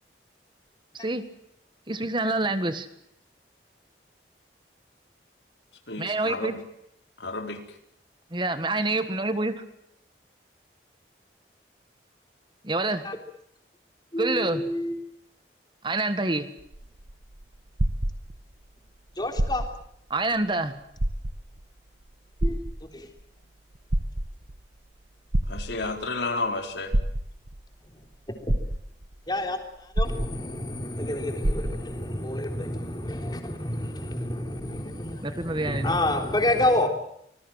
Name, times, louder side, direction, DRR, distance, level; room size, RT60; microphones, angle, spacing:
voice 1, 1.9-2.9 6.0-6.5 8.3-9.5 12.7-13.0 14.2-14.6 15.8-16.4 20.1-20.7 35.2-36.0, right 2 dB, 25° right, 11 dB, 1.5 m, -26 dB
voice 2, 5.9-6.5 7.2-7.6 25.5-26.9, left 3 dB, 80° left, 5 dB, 4.3 m, -31 dB
voice 3, 14.1-15.0 19.2-19.6 22.4-22.6 22.9-23.1 28.5-28.6 29.3-36.9, left 1 dB, 25° left, 4 dB, 3.7 m, -29 dB
sound 1, 16.6-18.7 19.3-19.9 20.4-20.5 20.9-21.6 22.4-23.2 23.7-24.6 25.3-26.1 26.9-27.6 28.1-28.2 28.5-29.2 29.9-30.8 31.0-31.1 31.4-32.0 32.8-32.9, right 1 dB, 85° right, 1.4 m, -27 dB
26.5 x 20.5 x 7.6 m, 0.73 s
head